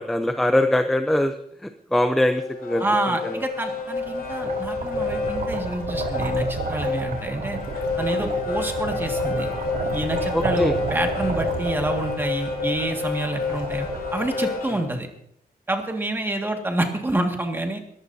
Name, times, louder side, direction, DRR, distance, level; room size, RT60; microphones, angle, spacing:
voice 1, 0.0-1.3 1.6-3.4 8.2-8.4 10.3-10.8 14.7-14.8, left 1 dB, ahead, 7 dB, 0.6 m, -23 dB
sound 1, 2.2-14.9, left 4 dB, 75° left, 3.7 m, -29 dB
voice 2, 2.8-7.6 8.0-9.5 9.9-13.9 14.1-15.1 15.7-17.8, right 1 dB, 15° right, 3 dB, 1.9 m, -27 dB
sound 2, 3.7-14.9, right 4 dB, 70° right, 3.8 m, -32 dB
21.0 x 14.5 x 2.7 m, 0.71 s
wide cardioid pair, 175°, 16 cm